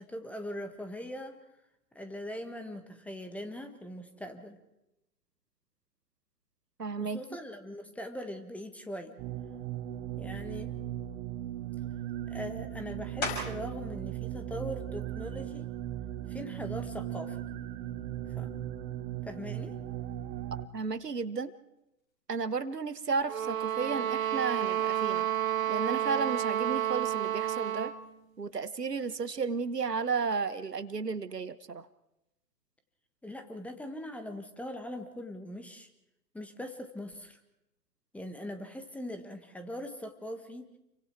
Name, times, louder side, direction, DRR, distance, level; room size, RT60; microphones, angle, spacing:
voice 1, 0.0-1.4 1.9-4.6 7.0-9.2 10.2-10.8 12.3-15.7 16.3-17.4 18.3-18.5 19.2-19.7 33.2-35.9 36.3-37.4 38.1-40.7, left 1 dB, 5° left, 8 dB, 1.4 m, -41 dB
voice 2, 6.8-7.2 20.7-21.5 22.3-25.3 25.7-27.9 28.4-31.9, right 5 dB, 80° right, 14 dB, 1.3 m, -33 dB
sound 1, 9.2-20.7, right 12 dB, 15° right, 0.9 m, -38 dB
sound 2, 13.2-13.8 14.4-18.8 19.3-24.5 24.8-30.4, left 3 dB, 20° left, 5.6 m, -46 dB
sound 3, 23.3-28.0, right 11 dB, 55° right, 2.0 m, -30 dB
29.0 x 23.5 x 4.5 m, 0.90 s
figure-of-eight pair, 120°, 47 cm